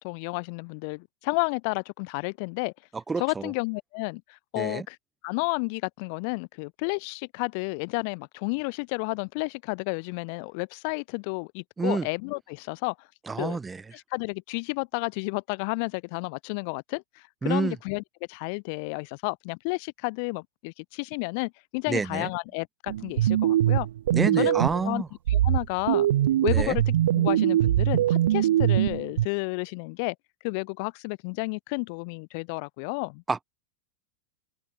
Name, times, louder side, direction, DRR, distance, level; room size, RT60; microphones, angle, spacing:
voice 1, 0.0-2.7 3.2-5.0 5.2-12.9 13.4-13.6 13.9-18.0 18.3-23.9 24.4-24.6 24.8-25.0 25.3-26.1 26.4-30.1 30.4-33.2, left 34 dB, 50° left, 3.1 m, -31 dB
voice 2, 2.9-3.5 4.6-4.9 11.8-12.1 13.3-13.8 17.4-17.8 21.9-22.3 24.1-25.1 26.5-26.8 33.3-33.4, right 4 dB, 10° right, 2.3 m, -28 dB
sound 1, 22.9-24.9 25.3-29.3, right 12 dB, 80° right, 1.2 m, -22 dB
open air
supercardioid pair, 145°, 0 cm